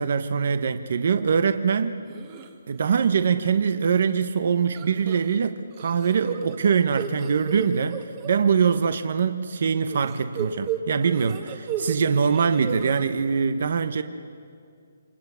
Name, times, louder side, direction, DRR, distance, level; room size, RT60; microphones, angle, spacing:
voice 1, 0.0-2.0 2.7-14.0, right 6 dB, 50° right, 10 dB, 1.0 m, -23 dB
sound 1, 2.1-2.5 2.9-3.2 3.5-3.6 4.7-5.4 5.7-8.8 9.9-12.0 12.2-13.0, right 9 dB, 20° right, 1.5 m, -34 dB
28.5 x 25.0 x 7.0 m, 2.3 s
hypercardioid pair, 170°, 0 cm